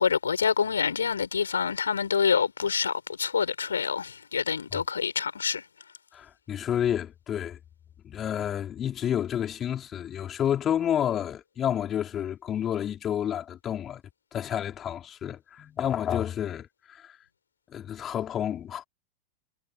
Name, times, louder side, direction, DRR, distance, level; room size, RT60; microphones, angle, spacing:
voice 1, 0.0-5.6, left 6 dB, 70° left, 6.3 m, -26 dB
voice 2, 6.1-7.6 8.0-14.0 14.3-17.2 17.7-18.8, left 10 dB, 25° left, 3.7 m, -30 dB
figure-of-eight pair, 90°, 0 cm